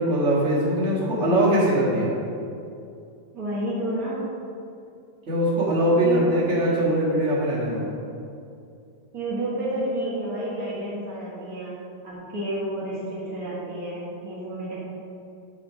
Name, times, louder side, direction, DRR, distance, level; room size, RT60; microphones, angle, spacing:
voice 1, 0.0-2.1 5.3-7.9, right 1 dB, 30° right, -7 dB, 1.3 m, -21 dB
voice 2, 3.3-4.3 6.0-6.7 9.1-11.8 12.0-14.7, right 1 dB, 75° right, -8 dB, 0.8 m, -30 dB
8.4 x 4.9 x 5.8 m, 2.5 s
omnidirectional pair, 4.0 m